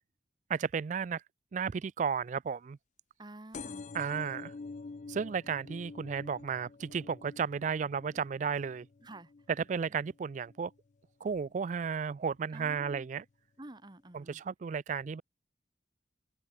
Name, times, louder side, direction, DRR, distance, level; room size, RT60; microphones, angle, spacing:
voice 1, 0.5-1.2 1.5-2.8 3.9-4.5 5.1-8.9 9.7-10.7 11.2-13.2 14.1-15.2, right 6 dB, 40° right, 0.3 m, -33 dB
voice 2, 3.2-3.9 9.0-9.3 12.5-13.1 13.6-14.4, right 1 dB, 25° right, 1.2 m, -49 dB
sound 1, 3.5-10.8 11.3-11.7 12.6-12.7 12.9-13.0 13.2-13.3, left 4 dB, 40° left, 0.4 m, -48 dB
head